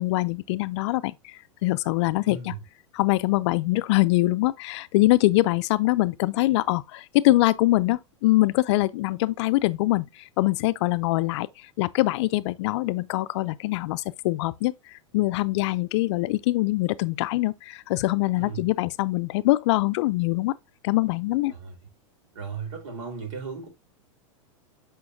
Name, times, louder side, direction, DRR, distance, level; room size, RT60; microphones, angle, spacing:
voice 1, 0.0-2.6 2.9-11.5 11.8-20.5 20.8-21.5, left 19 dB, 60° left, 0.4 m, -23 dB
voice 2, 2.2-2.6 18.3-18.7 21.5-21.8 22.3-23.7, right 5 dB, 70° right, 4.2 m, -36 dB
8.8 x 5.1 x 2.7 m
hypercardioid pair, 105°, 17 cm